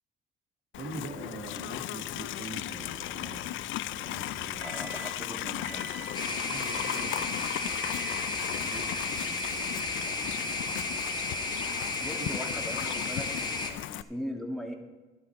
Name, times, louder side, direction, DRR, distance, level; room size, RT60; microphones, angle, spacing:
Livestock farm animals working animals, 0.7-14.0, left 14 dB, 80° left, 0.4 m, -36 dB
voice 1, 0.7-3.5 4.0-5.0 6.2-7.8 8.6-9.8 10.2-11.0 12.2-12.4, right 2 dB, 85° right, 3 dB, 1.9 m, -44 dB
Microwave oven, 2.7-5.3 5.6-6.2 6.6-7.2 7.7-8.3, right 4 dB, 40° right, 3.0 m, -47 dB
voice 2, 4.6-5.8 12.0-14.7, equal, ahead, 2 dB, 1.9 m, -39 dB
sound 1, 6.1-13.7, left 2 dB, 20° left, 1.7 m, -33 dB
12.0 x 11.5 x 4.6 m, 1.2 s
cardioid pair, 90°, 20 cm